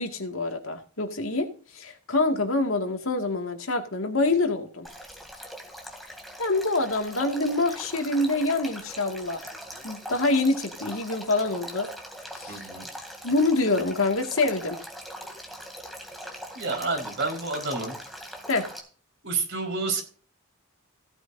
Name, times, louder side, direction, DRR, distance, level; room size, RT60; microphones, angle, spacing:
voice 1, 0.0-1.5 1.7-4.9 6.4-9.4 9.8-11.9 12.3-12.6 13.2-14.8 18.5-18.7, left 2 dB, 65° left, 4 dB, 2.1 m, -26 dB
Male speech man speaking / Stream / Trickle dribble, 4.8-18.8, equal, ahead, 2.8 m, -41 dB
voice 2, 12.5-12.8 16.5-18.0 19.2-20.0, right 3 dB, 55° right, 1 dB, 4.7 m, -29 dB
16.5 x 9.6 x 2.7 m, 0.39 s
head